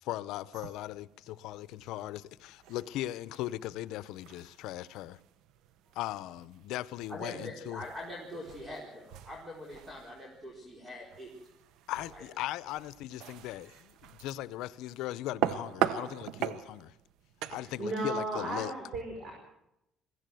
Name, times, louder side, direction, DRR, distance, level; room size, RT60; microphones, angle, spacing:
voice 1, 0.0-5.2 6.0-7.8 11.9-16.9 17.5-18.7, left 15 dB, 85° left, 0.7 m, -38 dB
sound 1, 0.5-18.7, right 11 dB, 80° right, 0.9 m, -41 dB
voice 2, 7.1-11.3 12.1-12.2, left 1 dB, 15° right, 4.5 m, -43 dB
voice 3, 17.5-19.3, right 2 dB, 50° right, 5.3 m, -35 dB
22.0 x 16.0 x 7.8 m
cardioid pair, 130°, 0 cm